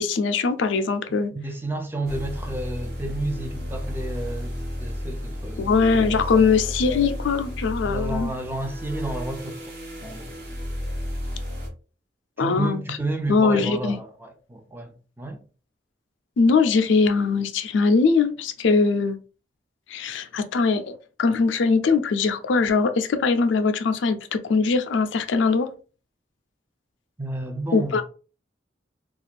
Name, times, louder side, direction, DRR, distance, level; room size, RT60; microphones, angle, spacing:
voice 1, 0.0-1.3 5.6-8.3 12.4-13.0 13.3-14.0 16.4-19.2 19.9-25.7 27.7-28.0, left 4 dB, 85° left, 0.4 m, -21 dB
voice 2, 1.3-5.7 6.1-6.5 7.8-9.8 10.0-10.3 12.4-15.4 27.2-28.0, right 2 dB, 10° right, 0.3 m, -31 dB
sound 1, 2.1-11.7, equal, 55° right, 0.9 m, -32 dB
2.4 x 2.3 x 3.2 m
head